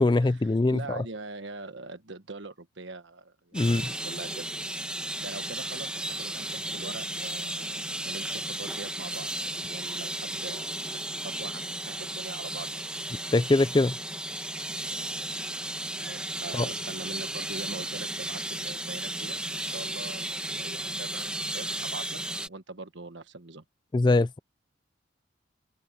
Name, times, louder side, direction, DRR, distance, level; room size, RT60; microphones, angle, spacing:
voice 1, 0.0-1.0 3.5-3.9 13.3-14.0 16.5-16.7 23.9-24.4, left 2 dB, 25° left, 0.3 m, -23 dB
voice 2, 0.7-4.5 5.2-12.9 16.0-22.2 22.5-23.6, right 3 dB, 70° right, 1.4 m, -42 dB
sound 1, 3.5-22.5, right 1 dB, 5° right, 1.2 m, -34 dB
open air
head